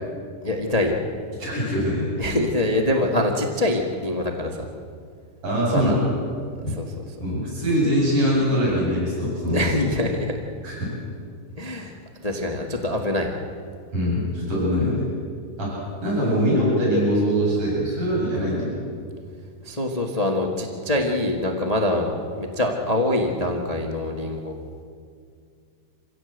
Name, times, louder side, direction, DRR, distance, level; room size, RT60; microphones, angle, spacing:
voice 1, 0.4-1.0 2.2-4.7 5.7-5.9 6.7-7.0 9.5-10.4 11.6-13.3 19.6-24.6, left 1 dB, 65° left, 2 dB, 0.3 m, -24 dB
voice 2, 1.4-2.0 5.4-6.0 6.6-6.8 7.2-9.7 10.6-10.9 13.9-15.1 15.6-15.8 16.0-18.7, equal, 40° right, -6 dB, 9.0 m, -22 dB
27.0 x 16.5 x 8.1 m, 2.2 s
omnidirectional pair, 4.1 m